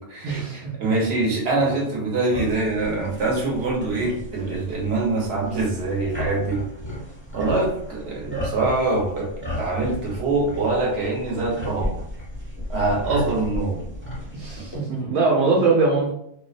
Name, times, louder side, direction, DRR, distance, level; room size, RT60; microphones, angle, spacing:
voice 1, 0.2-0.7 8.2-8.4 14.3-16.1, right 3 dB, 85° right, -4 dB, 1.0 m, -22 dB
voice 2, 0.8-6.6 7.3-9.3 9.6-12.0 12.7-13.8, right 3 dB, 55° right, -2 dB, 0.9 m, -24 dB
sound 1, 2.3-14.8, equal, 10° right, 0.9 m, -34 dB
2.5 x 2.1 x 2.4 m, 0.71 s
omnidirectional pair, 1.4 m